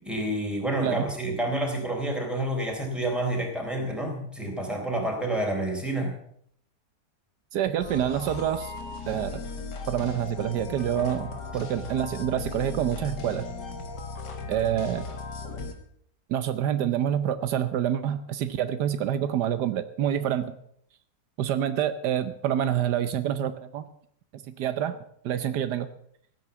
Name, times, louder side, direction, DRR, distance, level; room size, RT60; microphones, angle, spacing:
voice 1, 0.0-6.1, right 1 dB, ahead, 0 dB, 3.7 m, -29 dB
voice 2, 7.5-8.7 9.1-9.4 9.9-13.5 14.5-15.0 16.3-20.5 21.4-23.8 24.6-25.0 25.2-25.9, right 10 dB, 80° right, 12 dB, 1.4 m, -27 dB
sound 1, 7.8-15.7, left 3 dB, 90° left, 2.3 m, -37 dB
15.5 x 9.3 x 6.9 m, 0.68 s
omnidirectional pair, 1.8 m